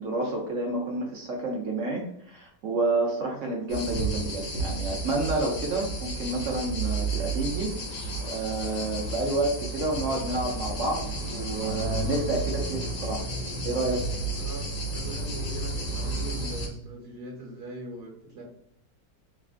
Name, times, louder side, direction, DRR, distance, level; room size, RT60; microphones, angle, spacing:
voice 1, 0.0-7.7 8.2-13.2 13.6-14.0, right 2 dB, 80° right, 0 dB, 0.6 m, -29 dB
sound 1, 3.7-16.7, right 2 dB, 55° left, 1.0 m, -32 dB
voice 2, 9.1-9.4 14.4-18.4, right 2 dB, 50° right, -2 dB, 1.2 m, -41 dB
3.0 x 2.4 x 2.4 m, 0.70 s
omnidirectional pair, 1.9 m